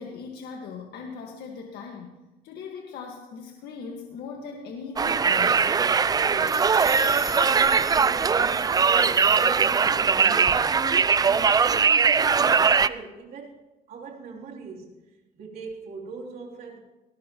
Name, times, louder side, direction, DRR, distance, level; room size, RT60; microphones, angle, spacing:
voice 1, 0.0-2.2 2.4-5.7, left 5 dB, 70° left, 1 dB, 1.7 m, -39 dB
Conversation, 5.0-12.9, right 5 dB, 20° right, 0.4 m, -21 dB
voice 2, 6.1-10.8 11.2-13.6 13.9-16.8, right 4 dB, 60° right, -2 dB, 3.3 m, -41 dB
sound 1, 6.2-10.2, left 4 dB, 20° left, 1.1 m, -41 dB
19.0 x 18.5 x 3.0 m, 1.1 s
cardioid pair, 110°, 17 cm